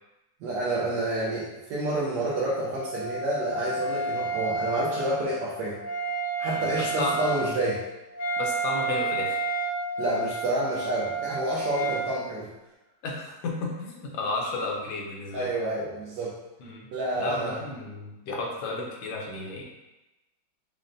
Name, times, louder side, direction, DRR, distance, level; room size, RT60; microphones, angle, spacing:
voice 1, 0.4-5.8 6.4-7.8 10.0-12.5 15.3-16.4 16.9-17.6, right 2 dB, 70° right, -6 dB, 1.2 m, -29 dB
Wind instrument woodwind instrument, 2.1-12.1, right 2 dB, 70° left, 1.2 m, -31 dB
voice 2, 6.5-7.2 8.4-9.4 13.0-15.5 16.6-16.9 17.1-19.6, left 2 dB, 90° left, -1 dB, 1.5 m, -33 dB
5.1 x 2.1 x 2.6 m, 1.0 s
omnidirectional pair, 2.0 m